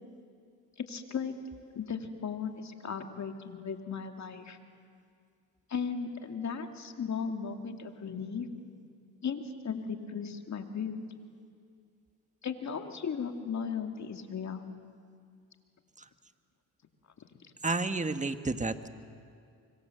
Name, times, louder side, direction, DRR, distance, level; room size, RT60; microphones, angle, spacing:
voice 1, 0.9-1.3 1.7-4.6 5.7-8.5 9.2-11.0 12.4-14.7, left 6 dB, 50° left, 5 dB, 2.5 m, -36 dB
voice 2, 17.6-18.9, right 3 dB, 20° right, 9 dB, 1.5 m, -31 dB
25.0 x 23.0 x 7.8 m, 2.3 s
supercardioid pair, 65°, 36 cm